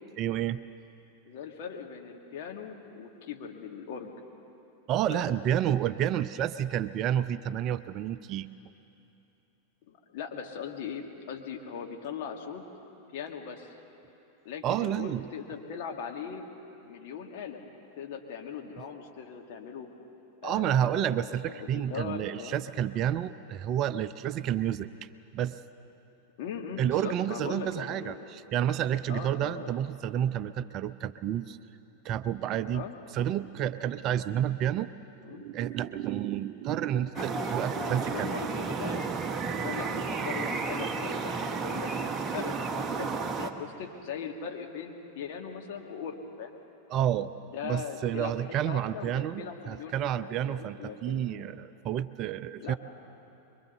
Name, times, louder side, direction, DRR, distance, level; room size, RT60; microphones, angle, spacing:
voice 1, 0.2-0.6 4.9-8.5 14.6-15.3 20.4-24.9 25.3-25.6 26.8-31.6 32.0-32.9 33.1-34.9 35.3-38.3 46.9-47.3 47.6-52.7, right 10 dB, 35° right, 13 dB, 0.6 m, -30 dB
voice 2, 1.3-4.1 5.1-5.4 9.9-12.6 13.1-13.7 14.4-16.5 16.8-17.6 17.9-19.9 20.4-22.6 26.4-28.3 29.1-29.7 32.7-32.9 35.2-35.4 37.2-39.1 39.5-46.5 47.5-51.6 52.6-52.8, left 7 dB, 50° left, 2 dB, 2.3 m, -40 dB
sound 1, 37.2-43.5, right 4 dB, 20° right, 1.3 m, -32 dB
25.0 x 23.0 x 6.8 m, 2.9 s
figure-of-eight pair, 90°, 0 cm